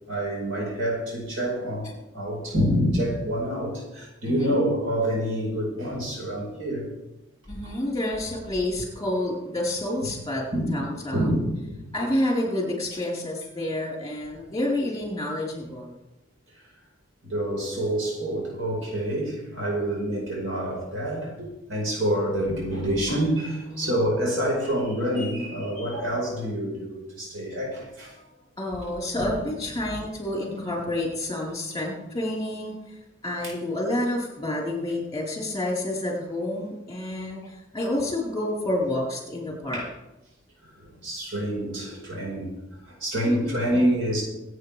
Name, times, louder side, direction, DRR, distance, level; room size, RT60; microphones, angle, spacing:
voice 1, 0.1-6.9 10.5-10.7 11.1-11.8 17.2-28.2 29.2-29.4 39.7-39.9 40.8-42.5 42.9-44.2, equal, 85° right, -3 dB, 5.2 m, -27 dB
voice 2, 4.2-4.6 7.5-10.4 10.7-11.3 11.9-15.9 23.7-24.0 28.6-39.8 43.2-43.6, left 1 dB, 15° left, -2 dB, 4.7 m, -29 dB
25.0 x 9.2 x 3.5 m, 0.95 s
head